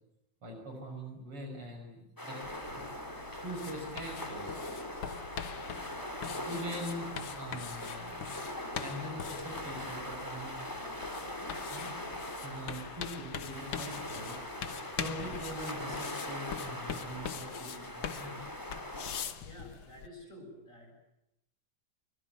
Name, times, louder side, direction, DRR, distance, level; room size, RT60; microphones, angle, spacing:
voice 1, 0.4-2.4 2.9-3.1 3.3-4.6 6.5-8.2 8.7-10.6 11.6-12.0 12.4-14.4 14.9-18.5, equal, 45° right, 3 dB, 7.2 m, -43 dB
sound 1, 2.2-19.2, left 1 dB, 5° left, 2.7 m, -41 dB
sound 2, 2.4-20.1, left 8 dB, 55° left, 1.4 m, -43 dB
sound 3, 2.6-14.6, right 4 dB, 25° right, 7.9 m, -57 dB
voice 2, 19.4-20.9, left 1 dB, 25° left, 3 dB, 8.0 m, -50 dB
23.5 x 23.5 x 9.3 m, 0.85 s
omnidirectional pair, 3.4 m